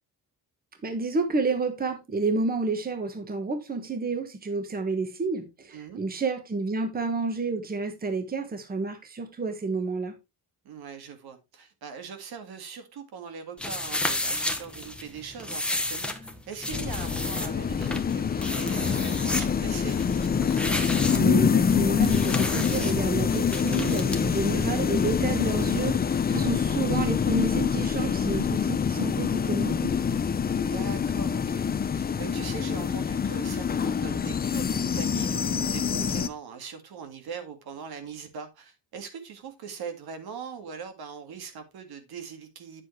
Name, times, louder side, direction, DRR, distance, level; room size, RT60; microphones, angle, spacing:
voice 1, 0.8-10.1 21.2-29.9, right 3 dB, 25° right, 1.4 m, -30 dB
voice 2, 5.7-6.0 10.6-16.1 16.5-20.3 26.3-26.6 30.5-42.8, right 6 dB, 75° right, 2.2 m, -41 dB
sound 1, 13.6-24.2, left 1 dB, 5° left, 1.1 m, -33 dB
sound 2, 16.7-36.3, left 7 dB, 25° left, 0.5 m, -26 dB
9.6 x 7.5 x 3.3 m
wide cardioid pair, 165°, 38 cm